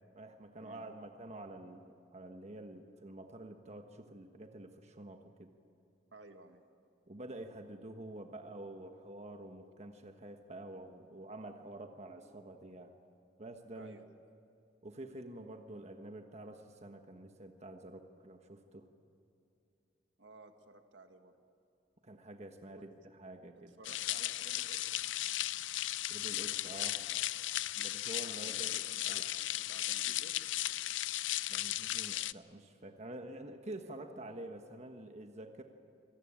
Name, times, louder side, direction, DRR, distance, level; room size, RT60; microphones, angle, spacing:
voice 1, 0.2-5.5 7.1-12.9 13.4-14.0 14.8-18.9 22.0-23.7 26.1-27.0 27.7-29.2 31.5-35.6, right 1 dB, 40° right, 5 dB, 1.3 m, -48 dB
voice 2, 6.1-6.6 13.8-14.1 20.2-21.3 22.6-22.9 23.5-25.1 28.2-30.4, right 2 dB, 75° right, 6 dB, 1.8 m, -56 dB
sound 1, 23.8-32.3, left 14 dB, 90° left, 0.5 m, -36 dB
26.5 x 18.5 x 8.8 m, 2.6 s
head